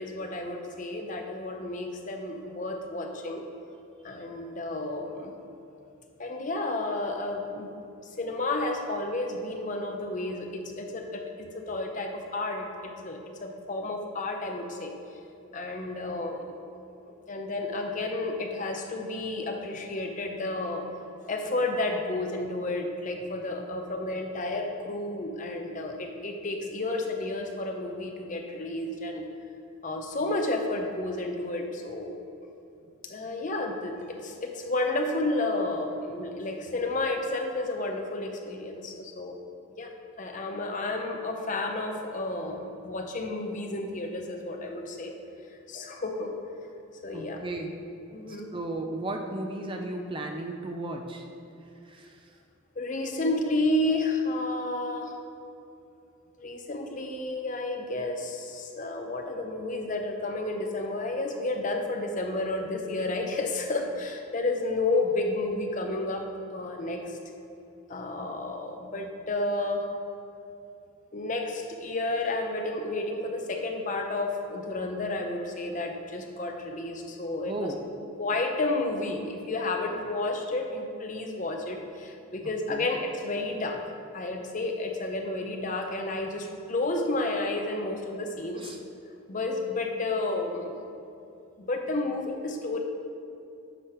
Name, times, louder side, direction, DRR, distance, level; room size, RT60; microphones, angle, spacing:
voice 1, 0.0-3.4 4.0-5.3 6.2-7.7 8.2-15.0 15.5-16.5 17.3-20.9 21.3-29.2 29.8-32.1 33.0-39.4 39.8-45.2 45.5-46.3 47.0-47.4 48.1-48.5 52.8-55.1 56.4-67.2 67.9-69.8 71.1-77.7 78.2-83.8 84.1-88.7 89.3-90.7 91.6-92.8, left 2 dB, 35° left, 3 dB, 0.6 m, -31 dB
voice 2, 47.1-47.8 48.3-51.3 51.8-52.4 53.0-53.2 77.5-77.8 82.7-82.9 88.6-88.8, right 2 dB, 25° right, 3 dB, 0.4 m, -35 dB
9.8 x 3.4 x 5.8 m, 2.7 s
head